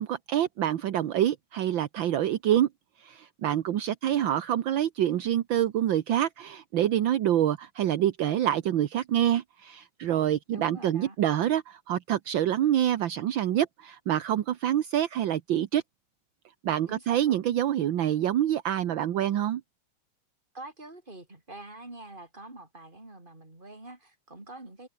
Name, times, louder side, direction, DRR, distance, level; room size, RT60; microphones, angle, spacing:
voice 1, 0.0-2.7 3.0-15.8 16.6-19.6, right 11 dB, 65° right, 1.7 m, -26 dB
voice 2, 4.0-4.4 10.5-11.2 16.9-17.4 20.5-24.9, right 2 dB, 20° right, 4.7 m, -45 dB
omnidirectional pair, 2.4 m